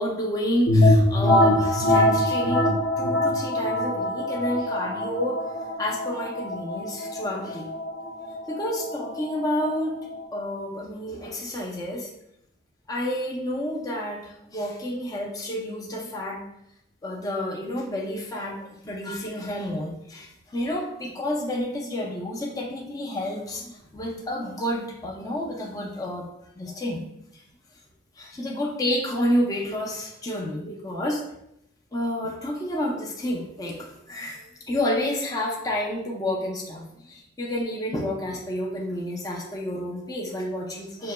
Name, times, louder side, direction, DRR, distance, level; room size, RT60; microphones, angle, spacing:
voice 1, 0.0-7.7 8.5-10.0 10.3-12.1 12.9-16.4 17.0-26.3 26.6-27.0 27.3-27.4 28.2-31.2 31.9-41.1, left 1 dB, 20° left, -2 dB, 0.5 m, -30 dB
sound 1, 0.7-10.2, left 1 dB, 70° left, 0.8 m, -23 dB
6.2 x 2.8 x 2.2 m, 0.80 s
head